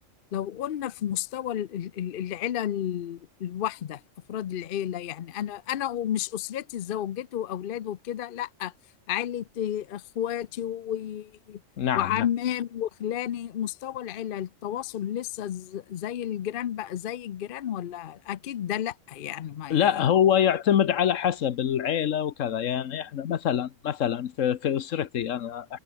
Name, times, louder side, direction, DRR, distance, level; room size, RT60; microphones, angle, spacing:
voice 1, 0.3-4.0 4.3-8.7 9.1-11.6 11.9-19.9, left 11 dB, 55° left, 0.6 m, -32 dB
voice 2, 11.8-12.3 19.7-25.8, left 9 dB, 70° left, 1.3 m, -25 dB
omnidirectional pair, 1.4 m